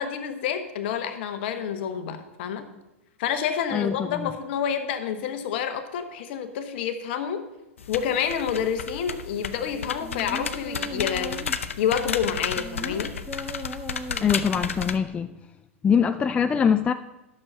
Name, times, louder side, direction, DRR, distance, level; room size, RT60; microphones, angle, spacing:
voice 1, 0.0-2.7 3.2-7.5 7.9-13.2, left 8 dB, 50° left, 8 dB, 1.1 m, -28 dB
voice 2, 3.7-4.3 14.2-15.4 15.8-16.9, left 7 dB, 15° left, 10 dB, 0.3 m, -23 dB
sound 1, 7.8-15.0, left 6 dB, 70° left, 0.6 m, -32 dB
sound 2, 9.7-11.7 12.2-14.7 15.0-15.1, equal, ahead, 1.1 m, -38 dB
12.0 x 6.4 x 5.5 m, 0.96 s
figure-of-eight pair, 95°, 7 cm